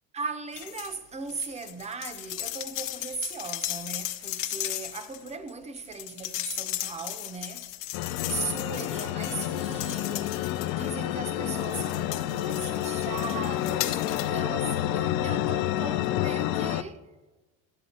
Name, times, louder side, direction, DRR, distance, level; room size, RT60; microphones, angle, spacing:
voice 1, 0.1-7.7 8.2-10.4 10.7-17.0, right 4 dB, 20° right, 0.6 m, -38 dB
sound 1, 0.5-1.0 1.3-11.0 11.5-14.4 14.7-14.8, left 14 dB, 85° left, 0.9 m, -36 dB
sound 2, 7.9-16.8, left 13 dB, 60° left, 0.6 m, -29 dB
11.5 x 7.5 x 4.2 m
cardioid pair, 135°, 38 cm